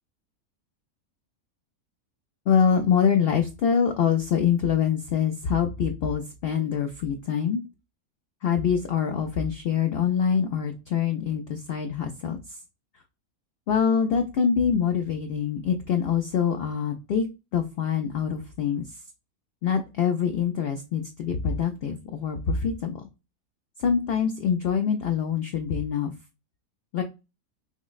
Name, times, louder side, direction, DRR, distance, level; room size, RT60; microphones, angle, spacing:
voice 1, 2.5-7.6 8.4-12.6 13.7-17.3 17.5-19.0 19.6-23.1 23.8-26.1 26.9-27.0, left 7 dB, 75° left, 5 dB, 0.5 m, -25 dB
5.7 x 2.0 x 2.3 m, 0.26 s
omnidirectional pair, 1.5 m